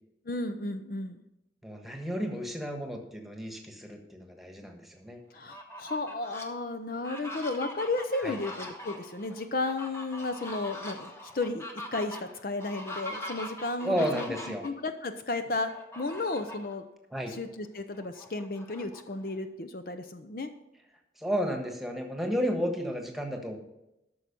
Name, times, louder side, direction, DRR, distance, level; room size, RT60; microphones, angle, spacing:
voice 1, 0.3-1.2 5.3-11.6 11.9-14.2 14.6-16.8 17.3-20.5, left 2 dB, 55° left, 9 dB, 0.6 m, -33 dB
voice 2, 1.6-5.2 8.2-8.4 13.8-14.6 17.1-17.3 21.2-23.6, equal, ahead, 3 dB, 1.4 m, -32 dB
Fowl, 5.4-6.4 6.9-14.7 15.7-16.7 17.2-17.3 17.6-19.4, left 1 dB, 15° left, 1.1 m, -42 dB
13.0 x 6.3 x 5.3 m, 0.90 s
head